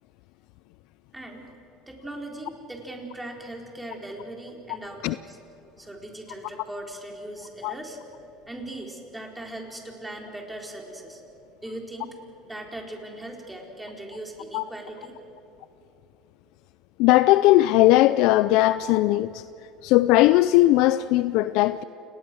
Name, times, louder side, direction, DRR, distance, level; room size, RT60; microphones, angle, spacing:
voice 1, 1.1-1.5 1.9-5.4 5.8-8.0 8.5-11.2 11.6-12.1 12.5-15.1, right 1 dB, 10° right, 4.6 m, -39 dB
voice 2, 17.0-19.4 19.8-21.8, left 16 dB, 70° left, 0.4 m, -18 dB
29.0 x 19.5 x 6.3 m
supercardioid pair, 95°, 0 cm